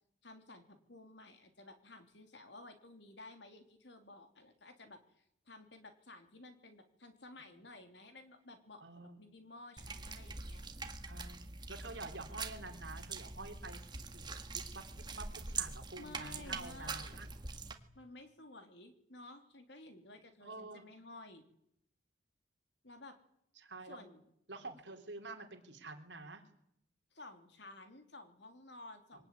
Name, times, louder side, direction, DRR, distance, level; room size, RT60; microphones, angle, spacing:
voice 1, 0.2-10.6 16.0-17.2 17.9-21.4 22.8-23.2 23.8-24.2 27.1-29.3, left 2 dB, 60° left, 7 dB, 3.2 m, -54 dB
voice 2, 8.8-9.3 11.0-17.3 20.4-20.9 23.6-24.0 24.5-26.4, right 3 dB, 60° right, 4 dB, 3.9 m, -49 dB
sound 1, 9.8-17.7, right 4 dB, 20° right, 1.7 m, -44 dB
23.5 x 18.5 x 9.6 m, 0.74 s
head